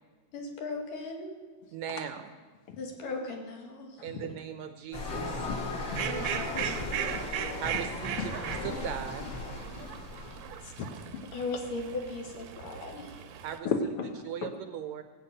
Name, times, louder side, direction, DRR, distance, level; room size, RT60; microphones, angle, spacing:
voice 1, 0.3-1.4 2.8-4.0 6.1-7.3 11.3-13.2, left 3 dB, 85° left, 1 dB, 3.7 m, -38 dB
voice 2, 1.7-2.3 4.0-5.4 7.6-9.2 13.4-13.7 14.2-15.0, right 9 dB, 75° right, 8 dB, 1.8 m, -38 dB
sound 1, 4.9-10.5, left 2 dB, 40° left, 2.1 m, -37 dB
Fowl, 5.8-13.6, right 9 dB, 90° right, 2.5 m, -38 dB
voice 3, 10.6-11.3 13.6-14.5, left 4 dB, 60° left, 5 dB, 1.6 m, -35 dB
18.0 x 6.5 x 8.8 m, 1.5 s
omnidirectional pair, 3.7 m